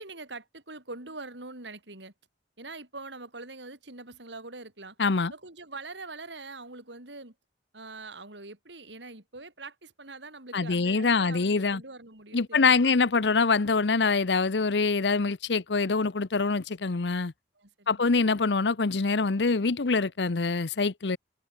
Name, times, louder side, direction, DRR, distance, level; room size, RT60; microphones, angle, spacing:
voice 1, 0.0-2.1 2.6-5.0 5.3-7.3 7.7-13.3 17.6-18.1, right 3 dB, 85° right, 6.4 m, -43 dB
voice 2, 5.0-5.3 10.5-11.8 12.3-17.3 17.9-21.2, left 4 dB, 75° left, 0.8 m, -25 dB
head